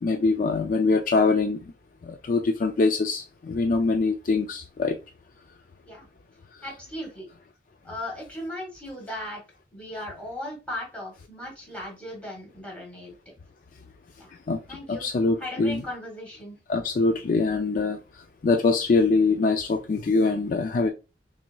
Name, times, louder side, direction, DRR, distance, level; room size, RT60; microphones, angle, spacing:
voice 1, 0.0-1.6 2.0-5.0 14.5-14.6 14.9-15.8 16.7-18.0 18.4-20.9, left 3 dB, 50° left, 0.4 m, -23 dB
voice 2, 6.6-7.3 7.8-9.4 9.7-13.3 14.2-14.3 14.7-15.1 15.4-16.6, left 1 dB, 10° left, 1.8 m, -37 dB
5.9 x 2.7 x 2.2 m
head